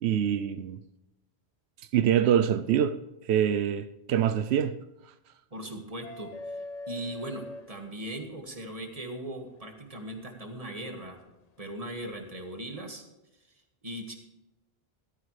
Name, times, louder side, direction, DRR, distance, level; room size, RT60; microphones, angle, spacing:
voice 1, 0.0-0.8 1.9-3.0 3.3-4.8, right 9 dB, 90° right, 0.9 m, -25 dB
voice 2, 5.5-11.2 11.6-13.0 13.8-14.2, right 1 dB, 35° right, 1.9 m, -39 dB
sound 1, 6.0-8.4 10.1-10.2 12.0-12.2, left 2 dB, 45° left, 0.7 m, -41 dB
14.5 x 14.0 x 3.3 m
omnidirectional pair, 1.1 m